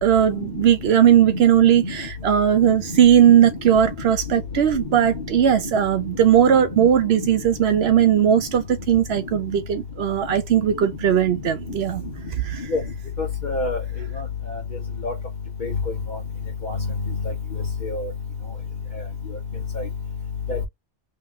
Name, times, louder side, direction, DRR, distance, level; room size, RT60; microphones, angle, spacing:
voice 1, 0.0-12.0 12.4-12.7, right 9 dB, 75° right, 0.9 m, -18 dB
voice 2, 6.5-6.9 7.2-7.3 12.7-12.8 13.2-13.8 15.0-15.1 15.6-15.7 16.1-16.2 16.6-16.8 17.8-18.1 19.8-19.9 20.5-20.6, left 3 dB, 50° left, 1.4 m, -27 dB
3.7 x 3.0 x 3.8 m
omnidirectional pair, 1.1 m